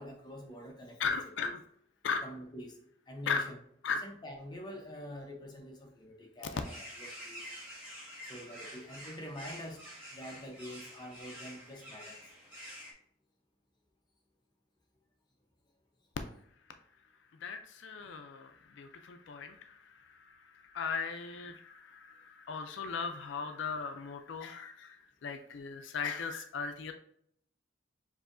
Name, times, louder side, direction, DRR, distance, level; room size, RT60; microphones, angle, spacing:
voice 1, 0.0-1.1 1.4-1.6 2.2-2.8 3.1-3.6 4.0-7.5 8.2-12.3, equal, 20° left, 1 dB, 0.7 m, -46 dB
voice 2, 1.0-1.6 2.0-2.2 3.3-3.4 3.8-4.0 17.4-19.6 20.2-20.4 20.7-26.9, left 5 dB, 65° left, 7 dB, 0.4 m, -37 dB
sound 1, 6.5-12.9, equal, 10° right, 1.3 m, -48 dB
6.8 x 2.7 x 2.5 m, 0.67 s
head